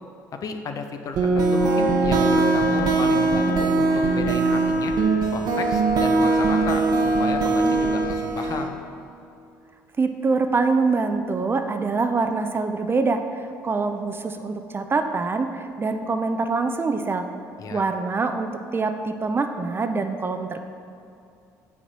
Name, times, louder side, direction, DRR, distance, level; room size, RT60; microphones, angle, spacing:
voice 1, 0.3-5.0 5.3-8.8 17.6-17.8, left 4 dB, 45° left, 6 dB, 0.6 m, -33 dB
sound 1, 1.2-8.7, right 3 dB, 55° right, 0.9 m, -21 dB
voice 2, 10.0-17.2 17.7-20.7, right 4 dB, 25° right, 7 dB, 0.5 m, -24 dB
5.9 x 4.0 x 5.8 m, 2.5 s
hypercardioid pair, 60°, 8 cm